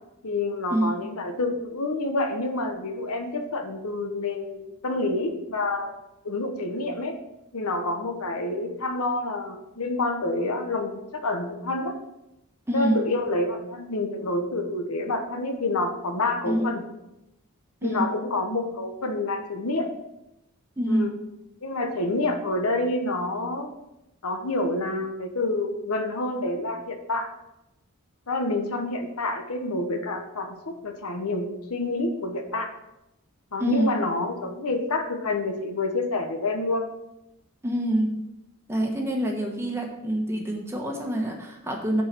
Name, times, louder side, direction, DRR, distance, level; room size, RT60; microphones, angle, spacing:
voice 1, 0.2-5.9 6.2-7.2 7.5-12.0 12.7-16.8 17.8-19.9 20.9-21.1 21.6-23.7 24.2-27.3 28.3-32.7 33.5-36.9, left 2 dB, 80° left, 5 dB, 1.0 m, -28 dB
voice 2, 12.7-13.0 16.5-16.7 17.8-18.1 20.8-21.1 33.6-33.9 37.6-38.1 38.7-42.0, right 1 dB, 10° right, 1 dB, 1.1 m, -26 dB
7.2 x 4.7 x 6.0 m, 0.91 s
head